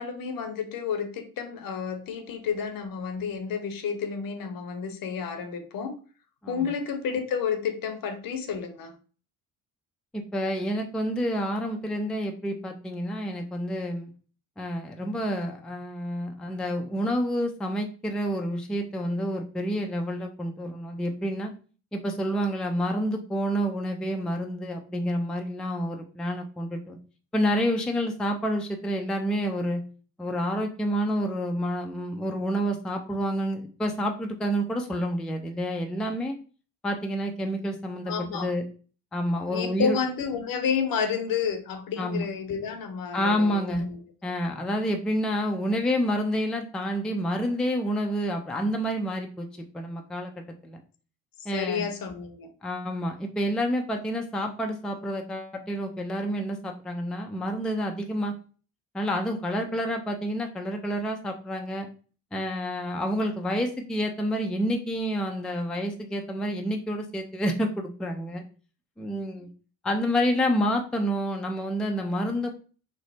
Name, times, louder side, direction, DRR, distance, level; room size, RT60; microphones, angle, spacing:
voice 1, 0.0-5.9 6.5-8.9 38.1-38.5 39.5-44.0 51.5-52.5, left 6 dB, 55° left, 7 dB, 0.8 m, -30 dB
voice 2, 10.1-14.1 14.6-21.5 21.9-27.0 27.3-29.8 30.2-36.4 36.8-38.6 39.1-40.0 42.0-42.2 43.1-43.8 44.2-49.5 49.7-50.3 50.6-50.8 51.5-51.9 52.6-58.3 58.9-61.9 62.3-68.4 69.0-69.5 69.8-72.5, equal, ahead, 3 dB, 0.5 m, -28 dB
3.1 x 2.0 x 4.1 m, 0.39 s
hypercardioid pair, 60°, 41 cm